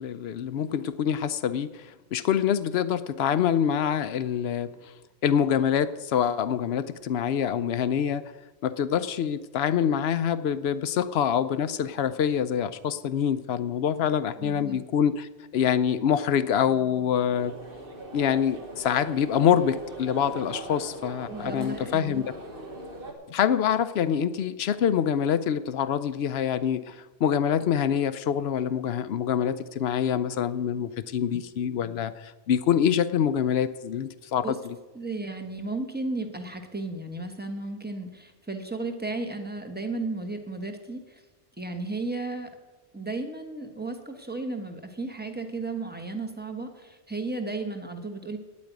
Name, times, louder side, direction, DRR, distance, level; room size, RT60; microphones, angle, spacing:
voice 1, 0.0-1.7 2.1-4.7 5.2-8.2 8.6-17.5 18.1-22.2 23.3-26.9 27.2-32.1 32.5-34.7, left 8 dB, 70° left, 14 dB, 0.8 m, -25 dB
voice 2, 14.4-14.8 21.3-22.3 34.4-34.6 34.9-41.2 41.6-42.5 42.9-48.4, right 3 dB, 10° right, 5 dB, 1.1 m, -34 dB
sound 1, 17.3-23.1, right 2 dB, 55° right, 1.6 m, -40 dB
9.0 x 8.5 x 9.2 m, 1.2 s
omnidirectional pair, 1.1 m